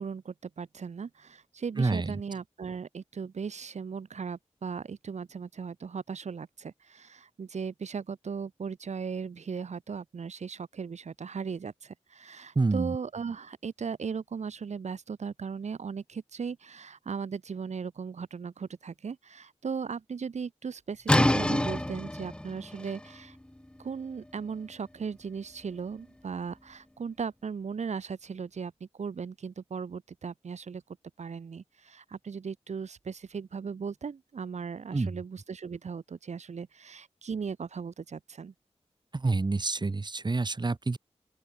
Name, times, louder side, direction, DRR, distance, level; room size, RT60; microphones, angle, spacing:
voice 1, 0.0-23.4 23.8-30.8 31.2-38.5, right 6 dB, 80° right, 1.3 m, -37 dB
voice 2, 1.8-2.2 12.6-13.0 34.9-35.1 39.1-41.0, right 3 dB, 40° right, 2.0 m, -28 dB
sound 1, 21.1-26.7, left 1 dB, 10° left, 0.6 m, -30 dB
open air
wide cardioid pair, 80°, 12 cm